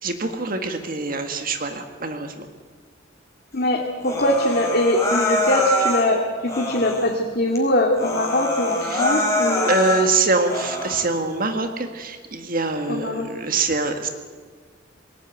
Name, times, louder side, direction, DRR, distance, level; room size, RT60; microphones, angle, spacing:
voice 1, 0.0-2.5 8.8-9.1 9.7-14.1, right 3 dB, 50° right, 6 dB, 1.8 m, -24 dB
voice 2, 3.5-6.2 6.6-9.7 12.9-13.3, left 1 dB, 50° left, 0 dB, 2.4 m, -22 dB
Human voice, 4.0-6.1 6.5-7.1 7.6-7.7 7.9-10.1 10.5-11.1, left 1 dB, 15° left, 4.5 m, -24 dB
21.5 x 19.0 x 9.3 m, 1.5 s
head